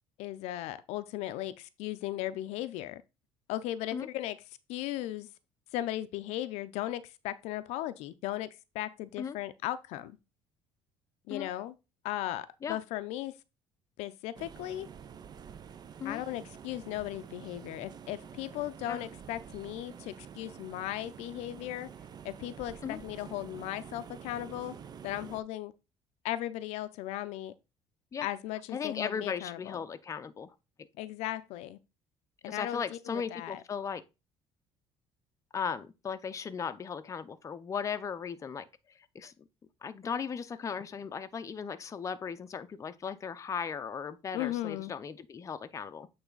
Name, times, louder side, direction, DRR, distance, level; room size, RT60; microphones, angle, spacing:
voice 1, 0.2-3.0 3.5-4.4 4.7-5.3 5.7-8.5 8.7-10.2 11.3-11.7 12.0-13.3 14.0-14.9 16.0-21.9 22.2-24.8 25.0-25.7 26.2-27.5 28.2-29.8 31.0-31.8 32.4-33.6 44.3-44.9, left 14 dB, 80° left, 0.5 m, -37 dB
sound 1, 14.3-25.4, right 7 dB, 40° right, 0.6 m, -48 dB
voice 2, 28.7-30.5 32.5-34.0 35.5-38.7 39.1-39.3 39.8-46.1, left 6 dB, 30° left, 0.6 m, -37 dB
8.1 x 3.3 x 3.9 m
cardioid pair, 110°, 11 cm